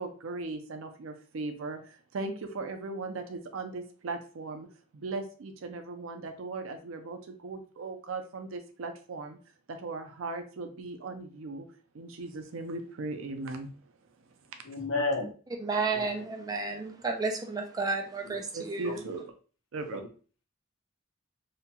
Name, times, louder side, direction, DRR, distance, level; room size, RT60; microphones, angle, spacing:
voice 1, 0.0-4.7 4.9-9.4 9.7-11.7 11.9-13.7 14.5-14.6 18.5-19.2 19.7-20.0, right 3 dB, 80° right, 0.5 m, -38 dB
voice 2, 14.6-15.3 15.9-16.2 18.2-18.4 19.0-19.1 19.9-20.1, left 3 dB, 80° left, 0.8 m, -32 dB
voice 3, 15.6-19.0, right 4 dB, 20° right, 0.4 m, -32 dB
2.8 x 2.2 x 2.8 m
head